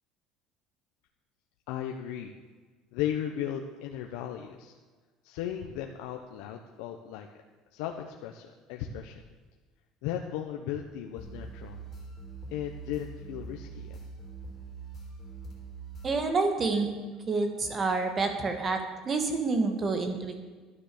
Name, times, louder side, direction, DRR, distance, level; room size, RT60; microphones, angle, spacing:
voice 1, 1.7-2.3 2.9-4.7 5.2-7.3 7.7-9.1 10.0-11.8 12.5-14.0, left 10 dB, 85° left, 2 dB, 1.1 m, -36 dB
sound 1, 11.2-16.2, right 4 dB, 20° left, 4.1 m, -43 dB
voice 2, 16.0-16.9 17.3-20.3, right 3 dB, 20° right, 6 dB, 1.6 m, -28 dB
12.5 x 10.0 x 6.8 m, 1.4 s
cardioid pair, 180°, 0 cm